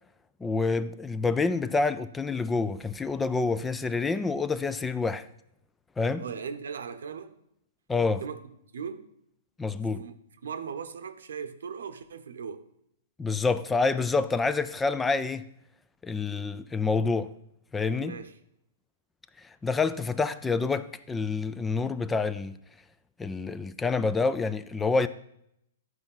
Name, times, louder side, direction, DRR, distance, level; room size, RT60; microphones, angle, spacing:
voice 1, 0.4-5.3 6.0-6.2 7.9-8.2 9.6-10.0 13.2-15.4 16.0-17.3 17.7-18.2 19.4-22.6 23.2-25.1, left 4 dB, 10° left, 0.3 m, -27 dB
voice 2, 6.2-7.4 8.1-8.4 8.7-9.1 10.0-10.2 10.4-12.7 18.0-18.4, right 6 dB, 85° right, 0.8 m, -38 dB
11.0 x 4.6 x 5.5 m
hypercardioid pair, 150°, 0 cm